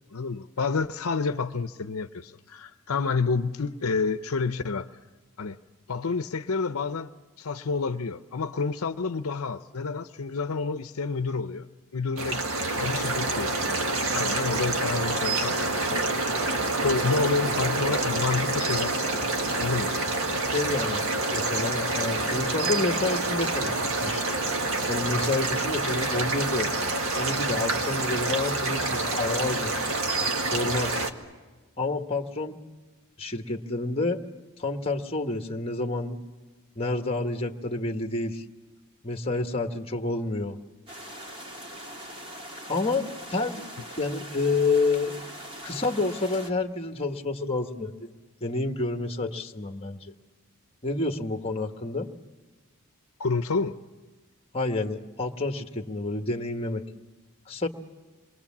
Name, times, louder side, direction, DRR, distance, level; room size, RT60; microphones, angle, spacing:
voice 1, 0.1-4.9 5.4-5.6 5.9-7.1 7.4-11.7 11.9-12.4 12.7-16.5 16.8-19.3 19.5-19.9 53.2-53.7, left 4 dB, 75° left, 0.7 m, -29 dB
sound 1, 12.2-31.1, right 2 dB, 65° right, 1.9 m, -27 dB
voice 2, 20.5-21.0 21.3-24.2 24.9-26.7 27.1-30.0 30.4-31.1 31.8-32.6 33.2-34.2 34.6-36.2 36.7-38.4 39.0-40.6 42.7-43.0 43.3-43.6 44.0-45.1 45.6-50.1 50.8-52.1 54.5-56.8 57.5-57.7, left 3 dB, 25° left, 1.3 m, -29 dB
sound 2, 40.9-46.5, equal, 25° right, 2.3 m, -41 dB
28.0 x 23.0 x 7.3 m
head